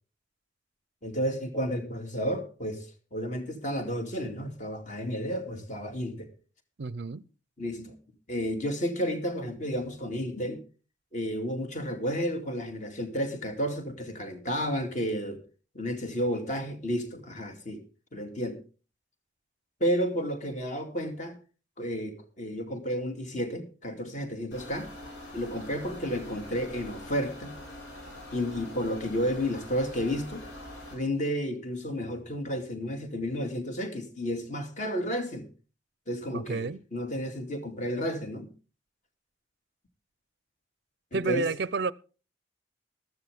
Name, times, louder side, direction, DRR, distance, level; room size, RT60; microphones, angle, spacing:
voice 1, 1.0-6.3 7.6-7.9 8.3-10.6 11.1-15.4 15.7-17.8 18.1-18.6 19.8-21.4 21.8-24.9 25.3-27.6 28.3-30.5 30.9-35.5 36.1-38.5 41.1-41.5, equal, 40° left, 2.4 m, -32 dB
voice 2, 6.8-7.2 36.3-36.8 41.1-41.9, right 4 dB, 60° right, 0.5 m, -30 dB
sound 1, 24.5-30.9, left 1 dB, 80° left, 6.6 m, -44 dB
14.5 x 13.0 x 3.6 m
head